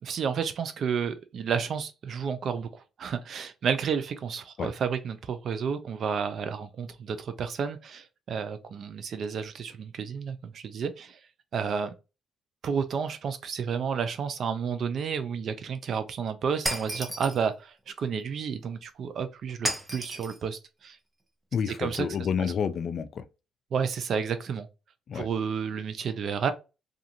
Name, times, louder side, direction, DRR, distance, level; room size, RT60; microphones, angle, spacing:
voice 1, 0.0-11.2 11.5-11.9 12.6-21.0 21.7-22.1 22.4-22.5 23.7-24.7 25.1-26.5, right 6 dB, 60° right, 0.5 m, -31 dB
Shatter, 16.7-17.4 19.7-20.4, right 1 dB, 15° right, 0.7 m, -32 dB
voice 2, 21.5-23.3 25.1-25.3, left 7 dB, 60° left, 0.3 m, -29 dB
2.5 x 2.4 x 2.8 m
cardioid pair, 90°, 0 cm